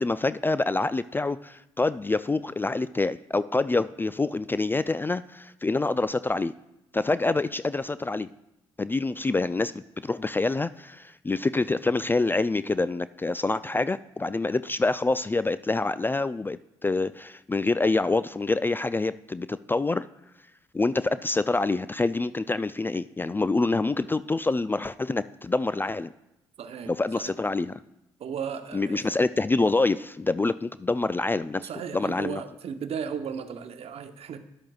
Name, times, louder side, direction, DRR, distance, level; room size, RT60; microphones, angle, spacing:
voice 1, 0.0-6.5 6.9-8.3 8.8-20.0 20.7-26.1 26.9-27.8 28.7-32.4, left 3 dB, 15° left, 15 dB, 0.3 m, -26 dB
voice 2, 26.6-26.9 27.2-27.3 28.2-29.1 31.6-34.4, right 7 dB, 55° right, 8 dB, 0.9 m, -35 dB
13.0 x 10.5 x 2.4 m, 0.89 s
hypercardioid pair, 50°, 12 cm